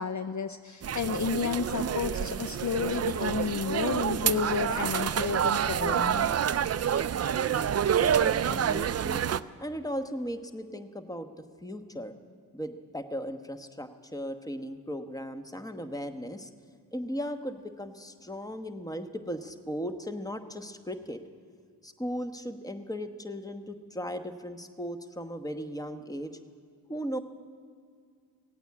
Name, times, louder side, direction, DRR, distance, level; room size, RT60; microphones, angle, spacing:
voice 1, 0.0-6.3, left 6 dB, 45° left, 9 dB, 0.7 m, -31 dB
sound 1, 0.8-9.4, right 8 dB, 40° right, 0.4 m, -28 dB
voice 2, 8.2-9.2 9.6-12.1 12.5-16.5 16.9-21.2 21.8-26.3 26.9-27.2, equal, 10° left, 9 dB, 1.1 m, -37 dB
16.5 x 8.8 x 8.5 m, 2.2 s
cardioid pair, 45°, 42 cm